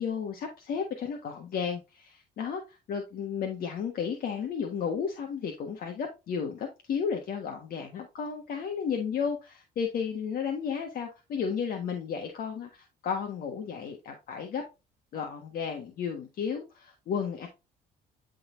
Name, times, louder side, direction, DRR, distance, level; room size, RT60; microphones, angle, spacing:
voice 1, 0.0-14.6 15.1-17.5, left 6 dB, 60° left, 1.5 m, -33 dB
11.5 x 4.1 x 2.6 m
cardioid pair, 110°, 17 cm